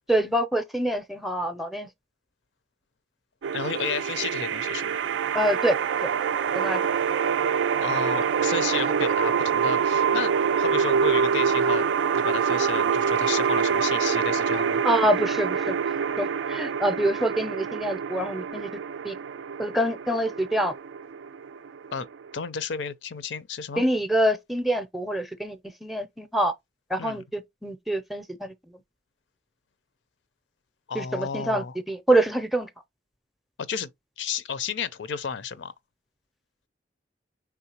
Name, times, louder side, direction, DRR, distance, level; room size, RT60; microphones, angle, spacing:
voice 1, 0.1-1.9 5.3-5.8 6.5-6.8 14.8-15.7 16.2-18.7 19.0-19.1 19.6-20.7 23.8-26.5 26.9-28.5 30.9-32.7, right 1 dB, ahead, 0.5 m, -25 dB
sound 1, 3.4-22.4, right 7 dB, 85° right, 0.3 m, -25 dB
voice 2, 3.5-4.9 7.8-10.3 10.6-11.9 12.1-14.8 21.9-22.1 22.3-23.8 27.0-27.2 30.9-31.8 33.7-33.9 34.2-35.7, left 6 dB, 90° left, 0.5 m, -32 dB
4.7 x 3.6 x 2.8 m
head